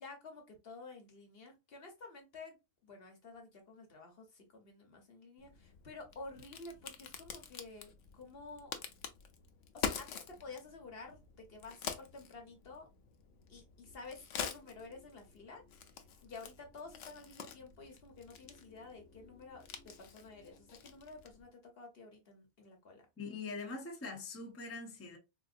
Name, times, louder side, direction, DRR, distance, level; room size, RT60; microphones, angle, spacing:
voice 1, 0.0-2.6 2.8-8.7 9.7-12.9 13.5-15.6 16.2-23.0, left 3 dB, 55° left, 1.2 m, -51 dB
Crack, 5.4-21.5, left 7 dB, 85° left, 1.0 m, -47 dB
voice 2, 23.2-25.2, left 3 dB, 20° left, 0.4 m, -43 dB
3.8 x 2.5 x 2.4 m
omnidirectional pair, 1.2 m